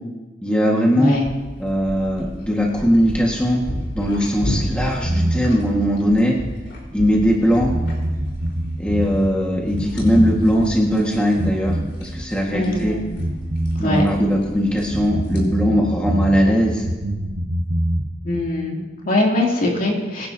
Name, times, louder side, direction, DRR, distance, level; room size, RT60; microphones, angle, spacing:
voice 1, 0.4-1.2 1.6-3.6 3.9-6.4 6.9-7.7 8.8-13.0 13.8-16.9, equal, 5° left, -2 dB, 1.6 m, -19 dB
voice 2, 0.9-1.3 12.5-13.2 13.8-14.0 18.2-20.3, left 1 dB, 50° left, -1 dB, 2.7 m, -22 dB
sound 1, 1.2-7.3 7.6-10.7 11.0-12.8 13.1-16.6 16.8-18.1, right 1 dB, 55° right, 1.2 m, -26 dB
sound 2, 1.3-15.4, equal, 80° left, 4.1 m, -33 dB
23.5 x 10.5 x 2.8 m, 1.2 s
head